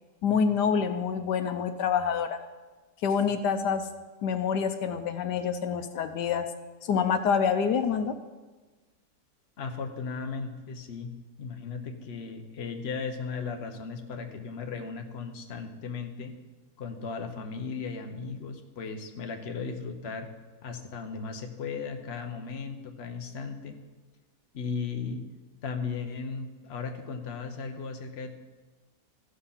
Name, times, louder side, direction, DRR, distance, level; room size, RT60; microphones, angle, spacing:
voice 1, 0.2-2.4 3.0-3.9 4.2-6.5 6.8-8.1, left 6 dB, 85° left, 9 dB, 1.3 m, -27 dB
voice 2, 9.6-11.1 11.4-16.3 16.8-20.3 20.6-23.8 24.5-25.2 25.6-28.3, left 5 dB, 45° left, 5 dB, 1.0 m, -36 dB
14.5 x 6.3 x 5.7 m, 1.3 s
omnidirectional pair, 1.8 m